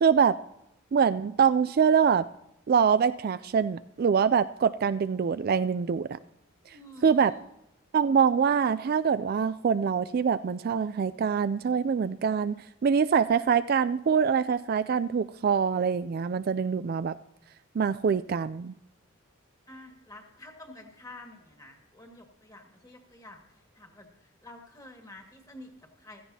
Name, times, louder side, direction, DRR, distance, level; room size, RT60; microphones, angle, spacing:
voice 1, 0.0-0.4 0.9-2.2 2.7-6.1 7.0-7.3 7.9-12.5 12.8-17.2 17.8-18.7, right 6 dB, 45° right, 13 dB, 0.3 m, -24 dB
voice 2, 6.6-7.4 19.7-26.2, left 1 dB, 15° left, 2 dB, 1.9 m, -49 dB
15.5 x 14.5 x 2.8 m, 0.83 s
head